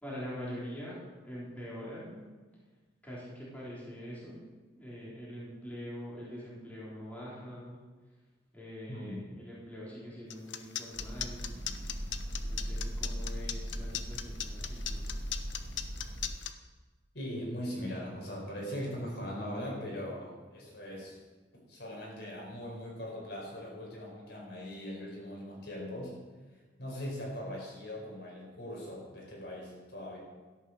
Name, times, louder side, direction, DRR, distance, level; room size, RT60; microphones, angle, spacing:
voice 1, 0.0-2.2 3.0-4.4 4.8-7.8 8.5-11.5 12.4-15.1, equal, 10° left, -8 dB, 3.7 m, -44 dB
voice 2, 8.9-9.2 17.1-21.2 21.7-26.1 26.8-30.2, equal, 60° left, -3 dB, 5.1 m, -40 dB
sound 1, 10.3-16.5, left 11 dB, 80° left, 0.8 m, -37 dB
sound 2, 10.9-16.3, equal, 50° right, 2.4 m, -38 dB
13.0 x 11.0 x 6.3 m, 1.3 s
head